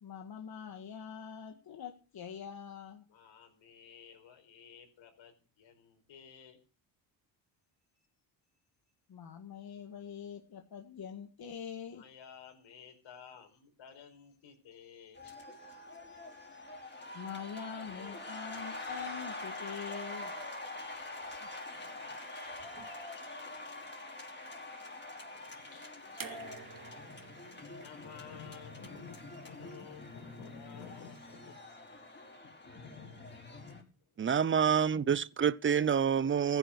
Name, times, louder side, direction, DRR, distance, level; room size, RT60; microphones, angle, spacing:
voice 1, 0.0-3.1 9.1-12.0 17.1-20.3 21.3-21.5, left 7 dB, 50° left, 2.0 m, -44 dB
voice 2, 3.1-6.6 7.9-8.0 11.9-15.4 25.5-26.6 27.6-31.5 32.4-33.3 34.0-34.1, left 7 dB, 80° left, 5.0 m, -53 dB
sound 1, 15.2-33.8, left 2 dB, 25° left, 4.4 m, -45 dB
sound 2, 26.2-29.4 30.6-30.7, right 6 dB, 45° right, 2.5 m, -50 dB
voice 3, 34.2-36.6, right 7 dB, 25° right, 0.6 m, -27 dB
15.0 x 10.5 x 6.6 m
cardioid pair, 95°, 45 cm